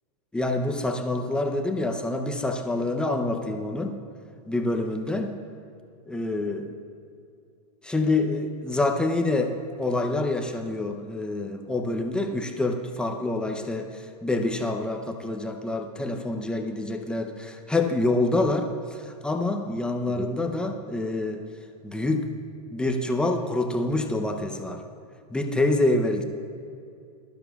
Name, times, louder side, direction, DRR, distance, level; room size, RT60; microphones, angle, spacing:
voice 1, 0.3-4.0 4.5-5.4 6.1-6.7 7.8-9.5 9.8-21.4 21.8-22.3 22.7-24.8 25.3-26.2, left 2 dB, 5° left, 3 dB, 0.6 m, -26 dB
21.0 x 12.0 x 2.3 m, 2.5 s
hypercardioid pair, 145°, 20 cm